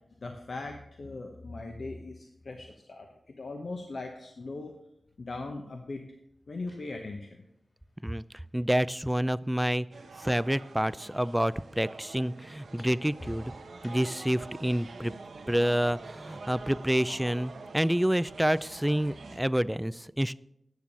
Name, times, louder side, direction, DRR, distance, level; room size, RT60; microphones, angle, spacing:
voice 1, 0.2-4.8 5.2-6.1 6.5-7.4, left 3 dB, 70° left, 3 dB, 0.9 m, -39 dB
sound 1, 5.1-5.2 6.3-10.3 10.6-14.4 16.4-16.6, left 1 dB, 50° left, 2.8 m, -54 dB
voice 2, 8.5-9.9 10.2-13.5 13.8-15.1 15.5-20.4, equal, 5° right, 18 dB, 0.3 m, -28 dB
sound 2, 9.9-19.4, right 3 dB, 90° right, 1.1 m, -46 dB
9.5 x 6.9 x 5.9 m, 0.81 s
cardioid pair, 50°, 0 cm